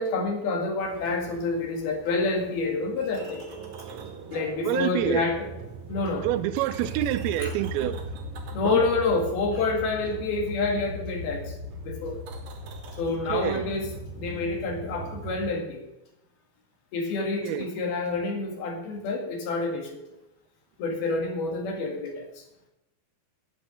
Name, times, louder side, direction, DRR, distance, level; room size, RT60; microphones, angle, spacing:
voice 1, 0.0-3.4 4.3-5.5 5.9-6.3 7.4-7.5 8.5-11.6 11.8-12.2 13.0-13.9 14.2-15.9 16.9-20.0 20.8-22.5, left 3 dB, 80° left, 4.0 m, -28 dB
sound 1, 0.8-15.5, right 2 dB, 55° right, 2.7 m, -39 dB
voice 2, 4.7-5.3 6.2-8.2 8.6-8.8 13.3-13.6 17.4-17.7, right 13 dB, 90° right, 2.5 m, -27 dB
9.0 x 9.0 x 6.4 m
omnidirectional pair, 4.3 m